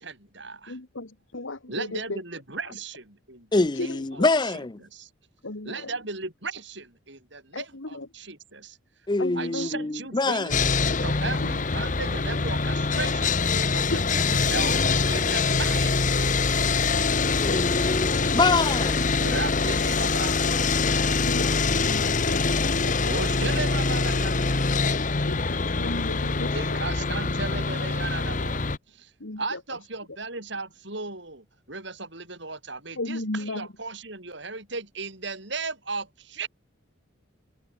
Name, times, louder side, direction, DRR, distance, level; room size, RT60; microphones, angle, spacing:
voice 1, 0.0-0.8 1.7-4.5 4.8-5.1 5.6-8.8 9.3-10.6 11.0-17.0 19.2-21.3 23.0-24.9 26.5-36.5, right 3 dB, 60° right, 5.9 m, -36 dB
voice 2, 0.7-2.2 3.7-4.3 5.4-5.9 7.5-8.1 9.2-9.8 11.4-11.5 13.9-14.4 21.2-23.0 25.3-26.8 29.2-29.6 33.0-33.7, left 2 dB, 75° left, 1.9 m, -35 dB
voice 3, 3.5-4.8 9.1-10.5 17.4-19.2, left 3 dB, 20° left, 0.5 m, -25 dB
Sawing, 10.5-28.8, left 4 dB, 40° left, 1.0 m, -24 dB
head